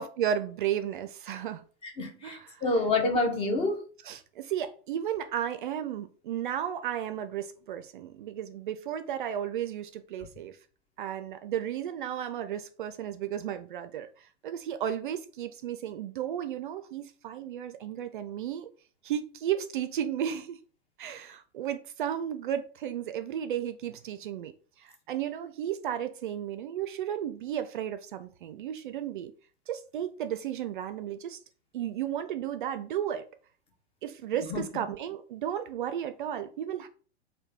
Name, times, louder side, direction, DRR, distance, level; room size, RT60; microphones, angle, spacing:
voice 1, 0.0-1.6 2.2-2.6 4.1-10.6 11.0-18.7 19.0-20.6 21.0-24.5 24.8-29.3 29.7-31.4 31.7-33.2 34.0-36.9, right 10 dB, 50° right, 0.4 m, -34 dB
voice 2, 1.8-3.9 34.5-34.6, left 2 dB, 15° left, 0.5 m, -28 dB
3.1 x 2.2 x 3.4 m
figure-of-eight pair, 100°, 33 cm